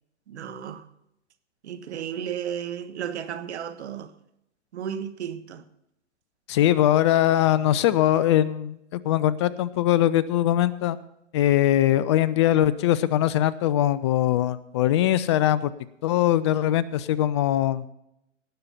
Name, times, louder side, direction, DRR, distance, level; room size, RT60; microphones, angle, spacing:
voice 1, 0.3-0.8 1.6-4.1 4.7-5.6, right 8 dB, 65° right, 1.4 m, -33 dB
voice 2, 6.5-11.0 11.3-15.7 16.0-17.8, left 12 dB, 25° left, 0.4 m, -21 dB
18.0 x 6.6 x 5.7 m
hypercardioid pair, 125°, 36 cm